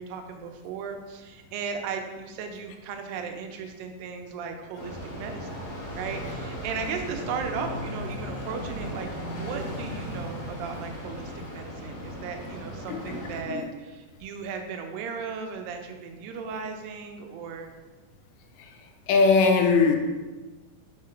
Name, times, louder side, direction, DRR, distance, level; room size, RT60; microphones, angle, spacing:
voice 1, 0.0-17.7, right 5 dB, 90° right, 5 dB, 2.4 m, -36 dB
sound 1, 4.7-13.4, equal, 60° left, 2.4 m, -36 dB
voice 2, 19.1-20.0, left 4 dB, 85° left, 4 dB, 2.3 m, -20 dB
5.6 x 3.8 x 4.4 m, 1.2 s
omnidirectional pair, 3.9 m